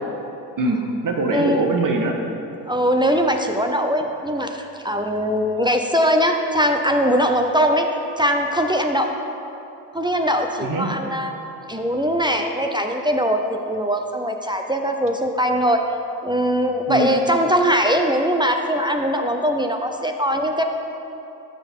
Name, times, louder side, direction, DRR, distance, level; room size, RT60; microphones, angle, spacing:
voice 1, 0.6-2.2 10.6-10.9 16.9-17.1, right 2 dB, 45° right, 2 dB, 1.5 m, -22 dB
voice 2, 2.7-7.9 8.2-9.1 9.9-11.3 11.7-15.8 16.2-20.6, equal, 10° right, 4 dB, 0.7 m, -21 dB
12.5 x 6.2 x 3.7 m, 2.9 s
hypercardioid pair, 45°, 44 cm